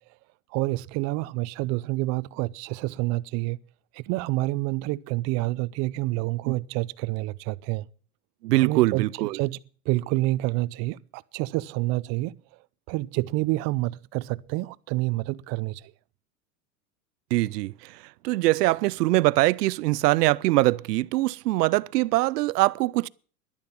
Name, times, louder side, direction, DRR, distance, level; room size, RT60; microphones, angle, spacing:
voice 1, 0.5-3.6 3.9-7.9 8.6-9.6 9.9-12.4 12.9-15.9, right 20 dB, 35° right, 0.5 m, -28 dB
voice 2, 8.4-9.4 17.3-17.7 18.2-23.1, right 18 dB, 80° right, 0.7 m, -22 dB
11.5 x 10.5 x 7.2 m
supercardioid pair, 130°, 47 cm